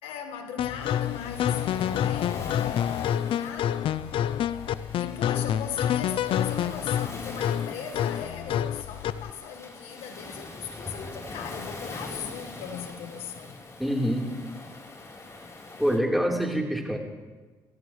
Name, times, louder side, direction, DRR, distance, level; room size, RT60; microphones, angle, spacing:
voice 1, 0.0-2.5 3.1-3.8 5.0-13.6, left 7 dB, 80° left, 1.5 m, -39 dB
sound 1, 0.6-9.3, left 10 dB, 65° left, 0.6 m, -28 dB
Waves surf, 0.8-16.0, left 2 dB, 30° left, 3.8 m, -43 dB
voice 2, 13.8-14.3 15.8-17.0, equal, ahead, 3.8 m, -25 dB
28.0 x 16.0 x 3.2 m
supercardioid pair, 70°, 10 cm